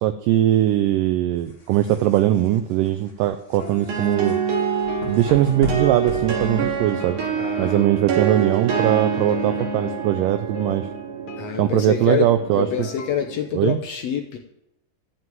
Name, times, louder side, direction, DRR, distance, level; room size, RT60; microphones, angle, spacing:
voice 1, 0.0-4.4 5.1-7.2 7.6-10.9 11.6-12.9 13.5-13.8, right 12 dB, 80° right, 10 dB, 2.0 m, -20 dB
sound 1, 1.4-7.3, left 3 dB, 35° left, 1.0 m, -37 dB
sound 2, 3.6-13.1, left 4 dB, 55° left, 1.5 m, -39 dB
sound 3, 3.9-13.5, right 7 dB, 60° right, 3.3 m, -27 dB
voice 2, 7.4-7.8 11.4-12.3 12.5-14.4, left 9 dB, 90° left, 3 dB, 1.4 m, -26 dB
13.0 x 5.9 x 9.1 m, 0.83 s
omnidirectional pair, 4.3 m